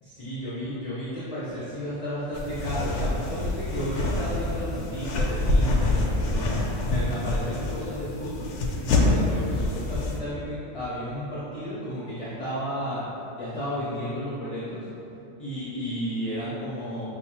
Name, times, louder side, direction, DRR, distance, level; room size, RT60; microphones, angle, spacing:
voice 1, 0.0-6.6 6.8-8.5 8.8-13.1 13.3-14.9 15.4-17.1, equal, 30° left, -10 dB, 0.8 m, -33 dB
sound 1, 2.3-10.2, left 2 dB, 75° left, 0.9 m, -26 dB
6.7 x 2.4 x 2.9 m, 2.8 s
omnidirectional pair, 1.3 m